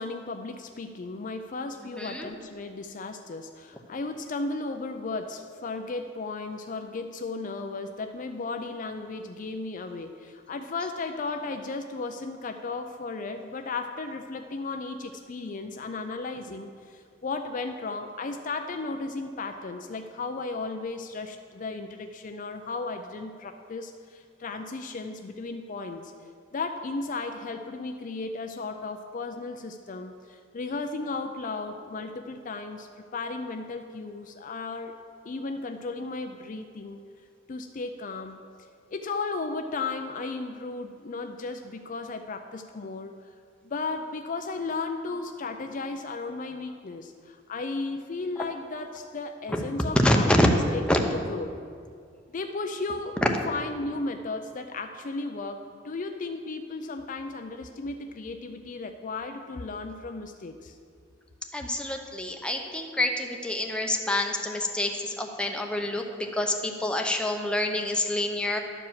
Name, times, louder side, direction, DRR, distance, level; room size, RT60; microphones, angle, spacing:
voice 1, 0.0-26.1 26.5-35.0 35.2-37.0 37.5-38.4 38.9-43.1 43.6-51.5 52.3-60.8, left 3 dB, 45° left, 6 dB, 0.4 m, -35 dB
voice 2, 1.9-2.3 49.5-49.6 50.0-50.5 50.9-51.0 61.5-68.6, left 1 dB, 5° left, 2 dB, 0.8 m, -27 dB
11.5 x 4.8 x 7.4 m, 2.2 s
head